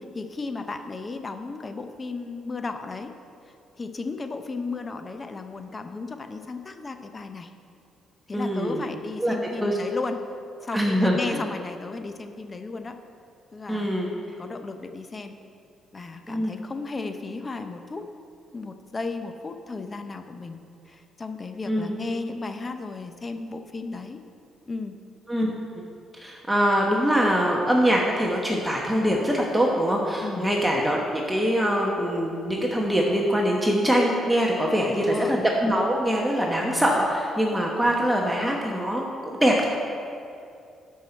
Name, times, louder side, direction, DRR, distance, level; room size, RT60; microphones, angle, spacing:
voice 1, 0.1-3.1 3.5-7.5 8.3-10.2 10.6-13.0 13.5-13.9 14.4-15.4 15.9-18.0 18.5-24.2 24.7-24.9 30.2-30.5 34.9-35.4, left 3 dB, 30° left, 7 dB, 0.6 m, -34 dB
voice 2, 8.3-8.8 9.2-9.4 9.6-9.8 10.7-11.4 13.7-14.1 16.3-16.6 21.7-21.9 25.3-25.5 26.1-39.7, equal, 10° right, -1 dB, 1.1 m, -23 dB
12.5 x 5.6 x 4.4 m, 2.5 s
cardioid pair, 90°, 0 cm